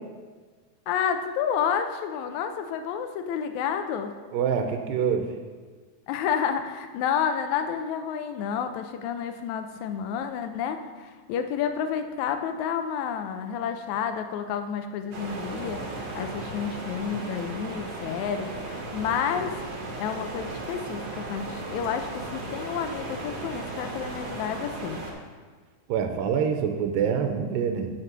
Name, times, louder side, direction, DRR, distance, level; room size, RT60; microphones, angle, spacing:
voice 1, 0.9-4.1 6.1-19.6 20.0-25.0, left 7 dB, 80° left, 7 dB, 1.7 m, -30 dB
voice 2, 4.3-5.3 25.9-27.9, right 7 dB, 90° right, 6 dB, 2.4 m, -25 dB
sound 1, 15.1-25.1, right 2 dB, 55° right, 2.4 m, -36 dB
8.2 x 5.9 x 6.0 m, 1.4 s
omnidirectional pair, 3.9 m